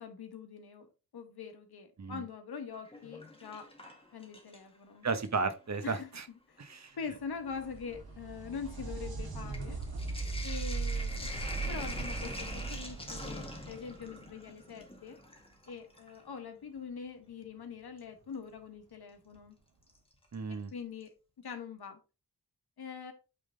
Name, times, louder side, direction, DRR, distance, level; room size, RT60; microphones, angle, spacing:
voice 1, 0.0-3.7 4.1-5.1 5.8-6.1 6.5-6.7 7.0-9.8 10.4-15.2 15.7-19.6 20.7-22.0 22.8-23.1, left 6 dB, 80° left, 1.6 m, -43 dB
Sink (filling or washing), 2.7-4.8 5.1-5.9 6.7-6.8 7.1-16.2 18.0-18.1 19.9-20.3 20.7-20.8 21.0-21.1, left 1 dB, 15° left, 1.6 m, -45 dB
voice 2, 5.0-6.2 6.6-7.0 20.3-20.7, right 4 dB, 45° right, 1.1 m, -34 dB
sound 1, 7.2-14.8 18.2-18.3 19.4-19.5, right 4 dB, 70° right, 2.0 m, -39 dB
8.5 x 3.6 x 3.8 m
wide cardioid pair, 105°, 38 cm